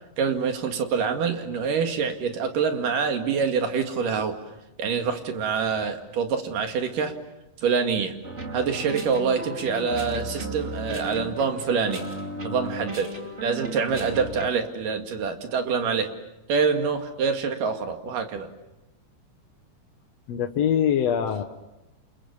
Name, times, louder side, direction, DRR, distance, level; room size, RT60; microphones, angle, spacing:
voice 1, 0.2-4.4 4.8-7.1 7.6-8.1 8.5-12.0 12.4-13.1 13.4-16.1 16.5-18.5, right 5 dB, 70° right, 5 dB, 3.7 m, -26 dB
sound 1, 8.2-14.5, right 1 dB, 20° right, 2.6 m, -35 dB
voice 2, 20.3-21.4, left 9 dB, 60° left, 6 dB, 1.9 m, -23 dB
29.5 x 27.5 x 7.3 m, 0.97 s
omnidirectional pair, 4.0 m